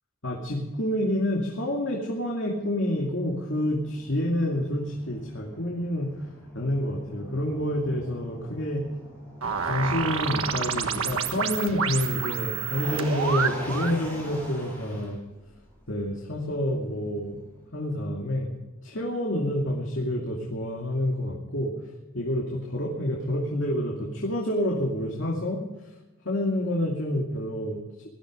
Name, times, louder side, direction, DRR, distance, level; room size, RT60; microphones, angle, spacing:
voice 1, 0.2-6.1 6.5-8.8 9.6-15.2 15.9-17.4 17.7-18.5 18.8-21.7 22.1-25.6 26.2-27.8, left 1 dB, 60° left, -1 dB, 2.6 m, -28 dB
Motor vehicle (road), 2.6-17.7, equal, 10° left, 7.2 m, -44 dB
sound 1, 9.4-14.0, right 6 dB, 90° right, 1.4 m, -29 dB
18.5 x 13.5 x 5.1 m, 1.1 s
head